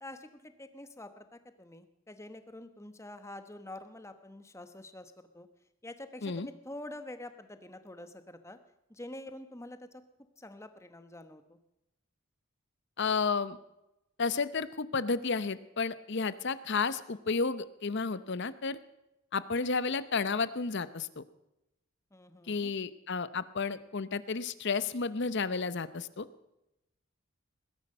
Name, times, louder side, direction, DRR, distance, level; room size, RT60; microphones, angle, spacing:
voice 1, 0.0-5.5 5.8-8.6 8.9-10.0 10.4-11.6 22.1-22.7, left 1 dB, 15° left, 10 dB, 1.0 m, -47 dB
voice 2, 13.0-13.6 14.2-18.8 19.3-21.2 22.5-26.3, left 4 dB, 55° left, 15 dB, 0.7 m, -32 dB
20.5 x 10.5 x 5.5 m, 0.90 s
head